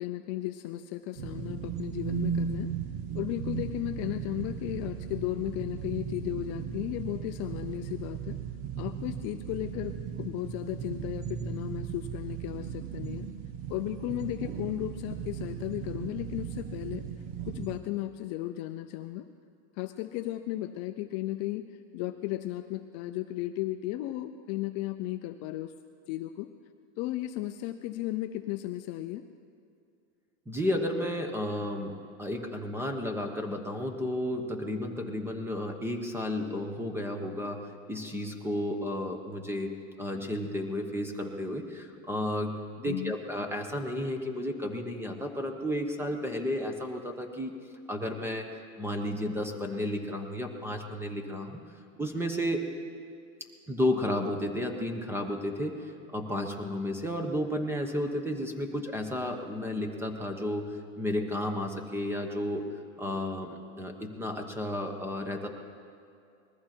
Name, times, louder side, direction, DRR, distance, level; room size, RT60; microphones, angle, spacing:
voice 1, 0.0-2.7 3.1-8.4 8.8-13.3 13.7-17.0 17.5-19.3 19.8-21.6 21.9-25.7 26.1-26.5 27.0-29.2 42.8-43.1, left 15 dB, 40° left, 8 dB, 0.6 m, -35 dB
sound 1, 1.2-17.8, right 7 dB, 55° right, 1.4 m, -37 dB
voice 2, 30.5-37.6 37.9-39.7 40.0-47.5 47.9-48.5 48.8-51.6 52.0-52.6 53.7-62.6 63.0-65.5, left 1 dB, 5° right, 5 dB, 1.2 m, -32 dB
20.5 x 14.5 x 4.5 m, 2.5 s
supercardioid pair, 135°, 40 cm